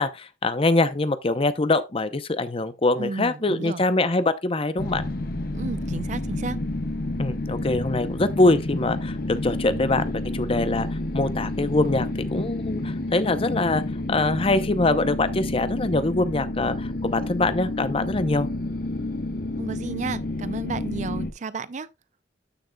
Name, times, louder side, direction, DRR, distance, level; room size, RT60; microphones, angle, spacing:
voice 1, 0.0-5.1 7.2-13.8 14.1-18.5, left 2 dB, 30° left, 0.7 m, -24 dB
voice 2, 3.0-3.8 5.5-6.6 9.7-9.8 19.6-21.9, right 3 dB, 40° right, 0.5 m, -32 dB
sound 1, 4.8-21.3, left 2 dB, 55° left, 1.1 m, -29 dB
13.0 x 6.6 x 2.3 m
head